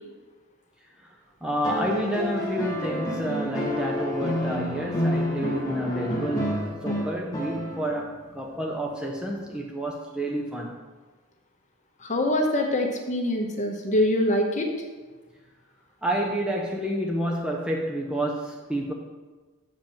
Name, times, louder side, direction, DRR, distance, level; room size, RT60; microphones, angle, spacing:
voice 1, 1.4-10.9 16.0-18.9, right 1 dB, 5° right, -1 dB, 0.6 m, -29 dB
sound 1, 1.6-8.1 9.6-9.7, left 1 dB, 15° left, 1.5 m, -29 dB
voice 2, 12.0-14.7, left 1 dB, 35° left, 2 dB, 1.2 m, -24 dB
7.4 x 5.1 x 7.1 m, 1.3 s
head